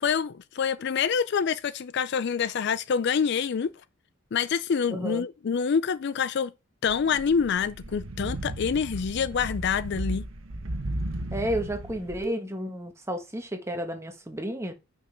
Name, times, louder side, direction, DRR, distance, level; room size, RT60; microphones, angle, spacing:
voice 1, 0.0-3.7 4.3-6.5 6.8-10.2, left 6 dB, 55° left, 0.4 m, -26 dB
voice 2, 4.9-5.2 11.3-14.7, equal, 15° right, 1.3 m, -32 dB
sound 1, 6.9-12.2, right 1 dB, 75° right, 1.2 m, -35 dB
9.2 x 5.4 x 3.4 m
head